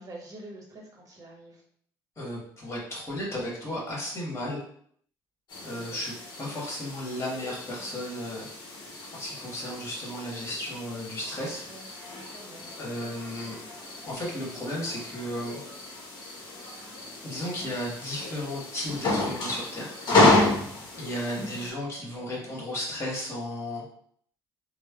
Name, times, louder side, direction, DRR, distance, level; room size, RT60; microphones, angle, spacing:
voice 1, 0.0-1.6 5.7-6.0 11.7-11.8 12.4-12.7 21.4-21.7 21.9-22.5, right 2 dB, 40° right, 0 dB, 0.9 m, -46 dB
voice 2, 2.2-4.6 5.6-8.5 9.1-11.6 12.8-13.6 14.0-15.6 17.2-20.0 21.0-23.8, left 1 dB, 30° left, -3 dB, 1.3 m, -34 dB
sound 1, 5.5-21.7, left 2 dB, 55° left, 0.8 m, -30 dB
3.0 x 2.0 x 2.2 m, 0.63 s
hypercardioid pair, 65°, 9 cm